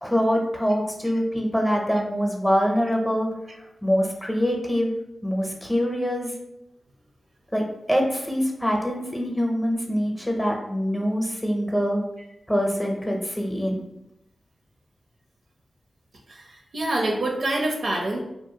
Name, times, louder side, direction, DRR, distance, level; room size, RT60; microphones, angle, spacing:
voice 1, 0.0-3.3 3.8-4.9 5.2-6.3 7.5-12.0 12.5-13.8, equal, 10° left, 1 dB, 0.6 m, -24 dB
voice 2, 16.3-18.2, right 1 dB, 75° right, 0 dB, 0.5 m, -26 dB
2.5 x 2.2 x 2.7 m, 0.87 s
cardioid pair, 45°, 0 cm